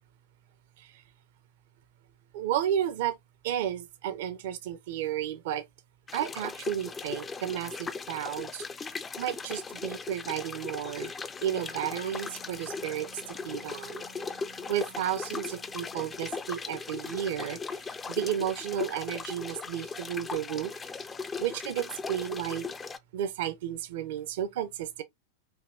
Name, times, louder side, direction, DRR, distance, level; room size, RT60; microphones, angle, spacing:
voice 1, 2.3-3.2 3.4-5.6 6.1-11.1 11.4-14.1 14.7-20.7 21.4-22.7 23.1-25.0, right 10 dB, 55° right, 0.6 m, -33 dB
sound 1, 6.1-23.0, left 4 dB, 15° left, 0.4 m, -38 dB
Wind instrument woodwind instrument, 11.4-16.2, equal, 85° left, 1.1 m, -52 dB
4.8 x 2.8 x 2.5 m
figure-of-eight pair, 90°, 0 cm